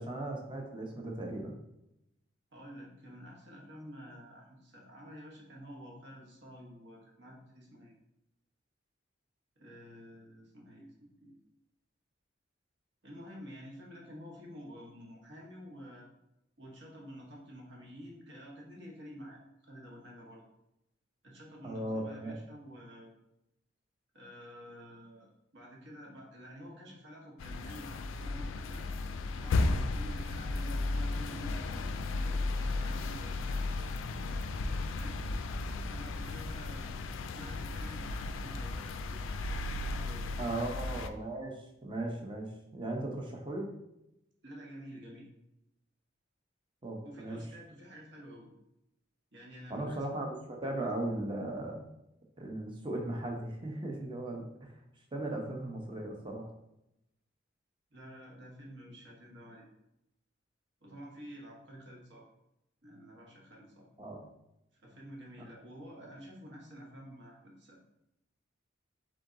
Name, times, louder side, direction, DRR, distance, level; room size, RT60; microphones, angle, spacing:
voice 1, 0.0-1.6 21.6-22.4 40.4-43.7 46.8-47.4 49.7-51.9 52.4-54.7 55.1-56.5 64.0-64.2, right 1 dB, 25° right, 1 dB, 0.8 m, -37 dB
voice 2, 2.5-8.0 9.6-11.4 13.0-16.1 16.6-20.4 21.2-23.1 24.1-28.8 29.3-34.1 34.7-35.3 35.8-37.0 37.3-40.7 44.4-45.3 47.0-48.5 49.3-50.0 57.9-59.7 60.8-62.3 62.8-63.9 64.8-67.8, equal, 65° right, -1 dB, 1.1 m, -50 dB
sound 1, 27.4-41.1, left 3 dB, 85° left, 0.3 m, -34 dB
3.8 x 3.4 x 3.8 m, 0.86 s
head